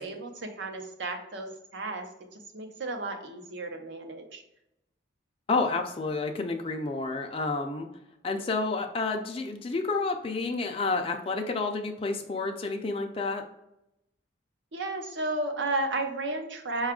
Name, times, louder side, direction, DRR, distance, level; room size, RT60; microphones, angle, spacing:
voice 1, 0.0-4.4 14.7-16.9, right 2 dB, 70° right, 4 dB, 0.7 m, -33 dB
voice 2, 5.5-7.9 8.2-13.4, left 3 dB, 30° left, 3 dB, 0.4 m, -30 dB
5.6 x 2.4 x 3.6 m, 0.84 s
head